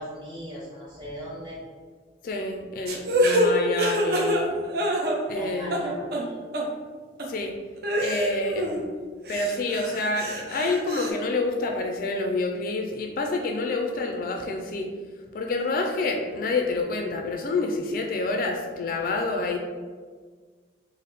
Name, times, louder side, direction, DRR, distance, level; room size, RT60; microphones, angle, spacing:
voice 1, 0.0-1.6 5.3-6.4, equal, 25° right, -8 dB, 1.4 m, -39 dB
voice 2, 2.2-4.6 5.3-6.1 7.3-7.5 8.0-8.9 9.3-14.9 15.3-19.6, left 3 dB, 50° left, 2 dB, 0.3 m, -28 dB
sound 1, 2.9-5.4 5.7-6.2 6.5-6.6 7.2-7.3 7.8-8.8 9.2-11.1, equal, 55° right, 0.5 m, -26 dB
3.4 x 2.0 x 4.0 m, 1.5 s
head